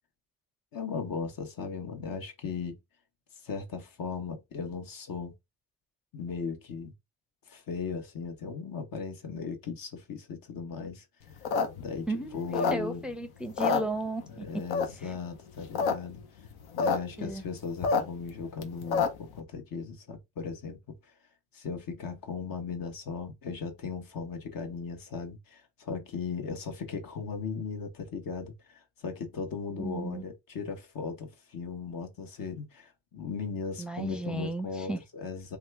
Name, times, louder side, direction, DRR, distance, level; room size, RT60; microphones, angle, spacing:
voice 1, 0.7-2.8 3.3-5.3 6.1-6.9 7.5-11.1 11.8-13.0 14.3-16.2 16.7-20.8 21.0-21.1 21.5-35.6, left 5 dB, 65° left, 1.1 m, -37 dB
sound 1, 11.3-13.1 13.4-14.3 14.7-15.1 15.5-15.9 16.2-16.3 16.4-17.0 17.3-19.3, left 5 dB, 80° left, 0.7 m, -28 dB
voice 2, 12.1-14.4 15.0-15.1 17.2-17.4 29.8-30.2 33.8-35.0, right 2 dB, 5° right, 0.5 m, -34 dB
2.8 x 2.3 x 3.4 m
supercardioid pair, 50°, 37 cm